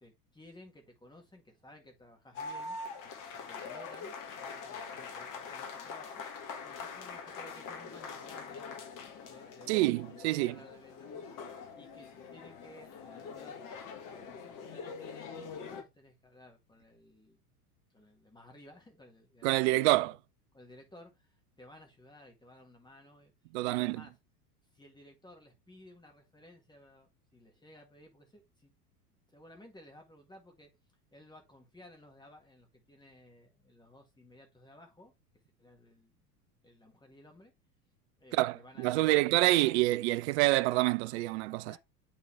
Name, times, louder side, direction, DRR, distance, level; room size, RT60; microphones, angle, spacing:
voice 1, 0.0-2.8 3.3-6.2 6.6-8.8 9.0-9.9 10.2-17.4 17.9-20.2 20.5-23.3 23.6-24.2 24.7-28.7 29.3-30.7 31.1-35.1 35.6-36.2 36.6-37.5 38.2-39.2 39.5-39.6 39.9-40.0 41.6-41.8, left 1 dB, 10° left, 1.8 m, -56 dB
sound 1, 2.3-15.8, left 5 dB, 40° left, 1.7 m, -44 dB
voice 2, 9.7-10.5 19.4-20.2 23.5-24.0 38.3-41.8, right 19 dB, 50° right, 0.4 m, -27 dB
9.0 x 3.9 x 3.2 m
figure-of-eight pair, 85°, 47 cm